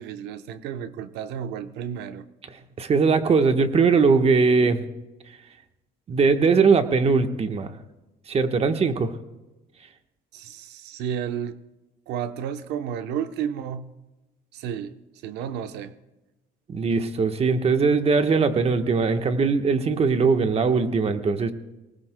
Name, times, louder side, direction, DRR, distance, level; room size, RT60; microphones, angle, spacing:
voice 1, 0.0-2.3 10.3-11.6 12.1-13.9 14.5-15.0 15.2-15.9, right 8 dB, 90° right, 0.9 m, -32 dB
voice 2, 2.8-4.8 6.1-7.7 8.3-9.1 16.7-21.5, right 4 dB, 35° right, 1.2 m, -20 dB
24.0 x 19.5 x 2.2 m
cardioid pair, 110°, 17 cm